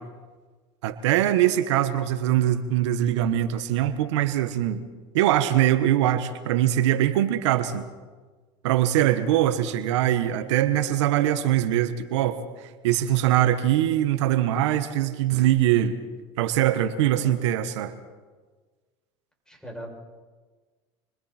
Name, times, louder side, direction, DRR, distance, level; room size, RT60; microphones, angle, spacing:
voice 1, 0.8-4.8 5.1-7.9 8.6-16.0 16.4-17.9, right 12 dB, 80° right, 11 dB, 1.3 m, -22 dB
voice 2, 17.1-17.4 19.5-20.0, equal, 5° left, -1 dB, 7.4 m, -42 dB
28.5 x 23.0 x 4.4 m, 1.4 s
supercardioid pair, 100°, 15 cm